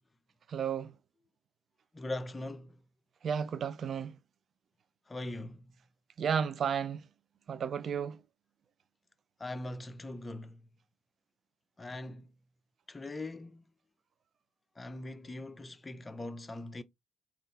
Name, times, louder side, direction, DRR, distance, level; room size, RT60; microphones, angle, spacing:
voice 1, 0.5-0.9 3.2-4.2 6.2-7.0 7.5-8.2, right 7 dB, 55° right, 0.5 m, -32 dB
voice 2, 1.9-2.8 5.1-5.7 9.4-10.6 11.8-12.3 12.9-13.6 14.8-16.8, left 2 dB, 25° left, 0.6 m, -41 dB
3.6 x 2.5 x 3.3 m
hypercardioid pair, 45°, 0 cm